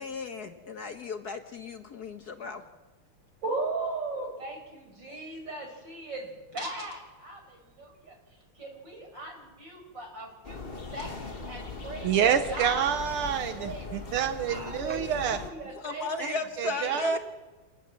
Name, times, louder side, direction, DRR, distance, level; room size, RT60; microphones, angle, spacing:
voice 1, 0.0-2.6 15.8-17.2, left 2 dB, 50° left, 6 dB, 1.7 m, -34 dB
voice 2, 3.4-12.2 12.5-12.9 13.1-13.9 14.4-17.2, right 2 dB, 55° right, 2 dB, 6.7 m, -38 dB
sound 1, 10.4-15.5, left 4 dB, 30° left, 1.7 m, -40 dB
voice 3, 12.0-15.4 16.2-17.2, right 8 dB, 80° right, 8 dB, 1.9 m, -28 dB
28.0 x 19.0 x 7.7 m, 1.2 s
omnidirectional pair, 2.4 m